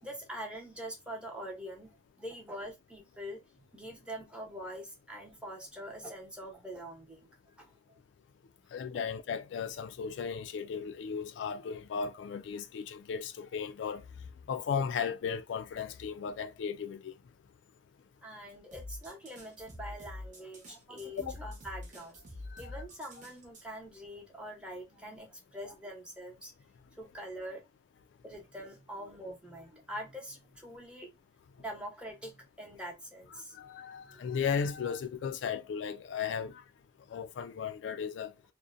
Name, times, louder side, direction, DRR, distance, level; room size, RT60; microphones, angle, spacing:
voice 1, 0.0-3.4 3.7-7.3 7.6-8.0 18.2-22.2 22.6-26.5 27.0-27.6 28.2-31.1 31.6-33.6 34.1-34.3, equal, 5° right, 0.7 m, -44 dB
voice 2, 8.7-14.0 14.5-17.1 21.2-21.3 22.5-22.8 33.5-36.6 37.1-38.3, left 6 dB, 80° left, 0.3 m, -35 dB
sound 1, 18.7-23.6, left 1 dB, 45° right, 0.8 m, -46 dB
2.6 x 2.0 x 2.4 m
head